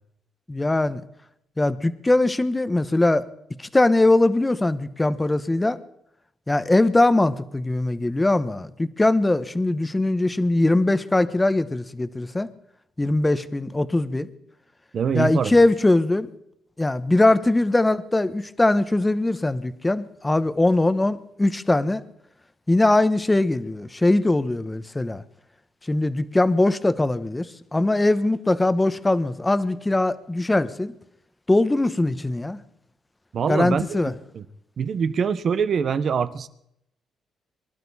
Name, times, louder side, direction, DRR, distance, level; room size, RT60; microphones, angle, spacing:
voice 1, 0.5-1.0 1.6-3.2 3.6-5.8 6.5-12.5 13.0-14.3 15.1-16.3 16.8-22.0 22.7-25.2 25.9-27.5 27.7-30.9 31.5-32.6 33.5-34.1, left 2 dB, 15° left, 13 dB, 1.0 m, -21 dB
voice 2, 14.9-15.5 33.3-34.5 34.8-36.5, right 7 dB, 55° right, 12 dB, 1.0 m, -24 dB
23.5 x 12.0 x 4.2 m, 0.76 s
cardioid pair, 90°, 0 cm